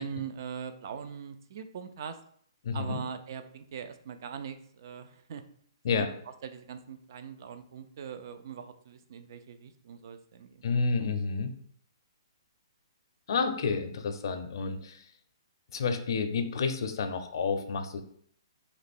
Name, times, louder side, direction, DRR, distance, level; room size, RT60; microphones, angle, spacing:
voice 1, 0.0-2.2 2.7-5.4 5.9-6.1 6.4-10.7, right 7 dB, 45° right, 9 dB, 0.4 m, -41 dB
voice 2, 2.6-3.0 5.8-6.1 10.6-11.5 13.3-15.1 15.7-18.0, left 5 dB, 55° left, 6 dB, 0.5 m, -30 dB
3.1 x 3.0 x 4.2 m, 0.62 s
hypercardioid pair, 165°, 3 cm